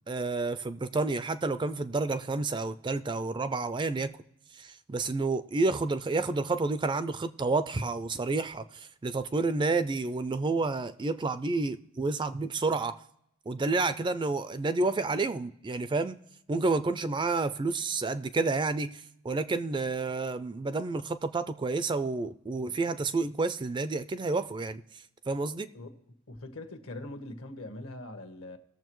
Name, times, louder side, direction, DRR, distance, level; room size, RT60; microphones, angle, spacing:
voice 1, 0.1-4.1 4.6-13.0 13.5-16.2 16.5-24.8 25.3-25.7, right 3 dB, 20° right, 0.3 m, -30 dB
voice 2, 26.3-28.6, left 1 dB, 70° left, 1.2 m, -42 dB
19.5 x 7.0 x 3.0 m
head